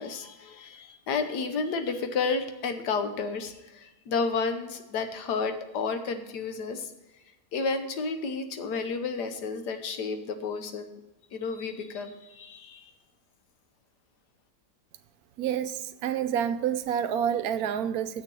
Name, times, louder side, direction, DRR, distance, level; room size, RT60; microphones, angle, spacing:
voice 1, 0.0-6.9 7.5-11.0 11.3-12.8, left 4 dB, 90° left, 8 dB, 1.6 m, -31 dB
voice 2, 15.4-18.2, right 9 dB, 75° right, 11 dB, 1.0 m, -28 dB
7.4 x 6.7 x 7.5 m, 1.0 s
omnidirectional pair, 1.7 m